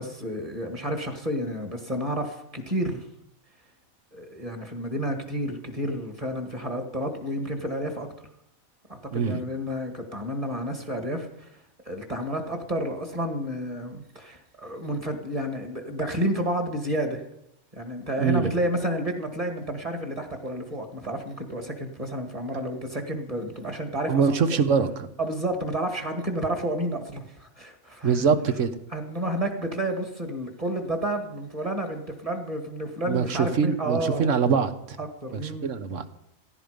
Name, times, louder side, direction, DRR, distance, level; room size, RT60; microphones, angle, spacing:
voice 1, 0.0-3.1 4.1-8.1 8.9-11.5 11.9-17.2 17.7-24.4 25.2-28.3 28.9-34.3 35.0-35.7, right 1 dB, 25° right, 5 dB, 2.2 m, -30 dB
voice 2, 9.1-9.4 18.2-18.5 24.1-25.1 28.0-28.7 33.0-35.0 35.4-36.0, right 6 dB, 65° right, 11 dB, 1.4 m, -23 dB
16.0 x 15.5 x 5.2 m, 0.80 s
omnidirectional pair, 1.4 m